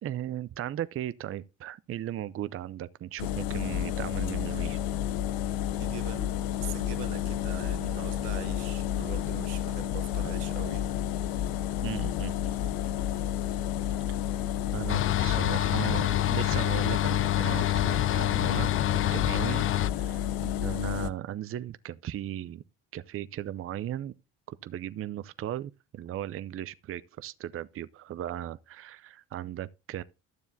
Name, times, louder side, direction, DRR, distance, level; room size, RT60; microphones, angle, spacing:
voice 1, 0.0-4.8 11.8-12.3 14.7-18.7 19.1-19.6 19.9-22.6 22.9-24.1 24.5-30.0, right 12 dB, 35° right, 0.5 m, -37 dB
sound 1, 3.2-21.1, left 11 dB, 65° left, 0.7 m, -31 dB
voice 2, 5.8-11.0, right 15 dB, 80° right, 0.8 m, -42 dB
sound 2, 14.9-19.9, left 12 dB, 35° left, 0.4 m, -28 dB
12.5 x 7.0 x 2.6 m
supercardioid pair, 70°, 39 cm